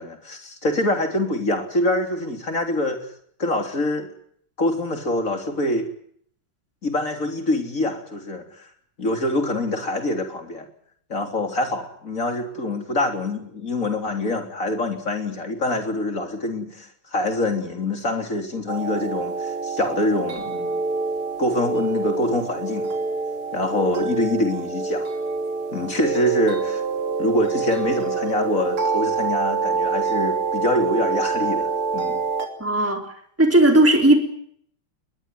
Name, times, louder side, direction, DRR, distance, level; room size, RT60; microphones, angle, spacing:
voice 1, 0.0-3.0 3.4-4.1 4.6-5.9 6.8-8.4 9.0-10.7 11.1-20.8 21.4-22.9 23.5-25.1 25.7-26.8 27.2-32.2, left 1 dB, 35° left, 5 dB, 3.9 m, -25 dB
sound 1, 18.7-32.5, right 4 dB, 80° right, 4.1 m, -26 dB
voice 2, 32.6-33.1 33.4-34.2, right 1 dB, 5° right, 4 dB, 3.6 m, -16 dB
21.5 x 20.5 x 9.5 m, 0.66 s
omnidirectional pair, 2.3 m